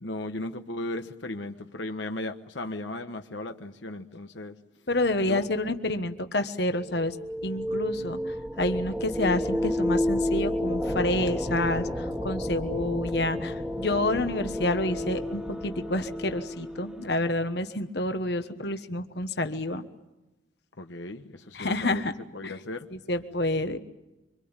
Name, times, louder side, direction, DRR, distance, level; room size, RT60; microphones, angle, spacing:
voice 1, 0.0-4.6 5.2-5.5 20.8-22.0 22.3-22.9, left 2 dB, 75° left, 6 dB, 1.3 m, -36 dB
voice 2, 4.9-7.2 7.4-19.8 21.5-22.1 22.4-22.5 23.1-23.8, left 2 dB, 60° left, 8 dB, 1.3 m, -28 dB
sound 1, 6.8-17.3, left 1 dB, 5° right, 1.6 m, -31 dB
25.5 x 25.5 x 8.9 m, 1.0 s
head